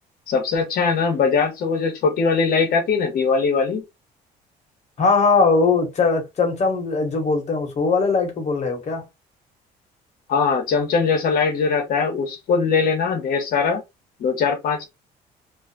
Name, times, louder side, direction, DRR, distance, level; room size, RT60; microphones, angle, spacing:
voice 1, 0.3-3.8 10.3-13.8 14.2-14.9, left 5 dB, 60° left, 1.2 m, -21 dB
voice 2, 5.0-9.0, left 4 dB, 40° left, 1.3 m, -20 dB
2.7 x 2.4 x 2.5 m
cardioid pair, 110°, 17 cm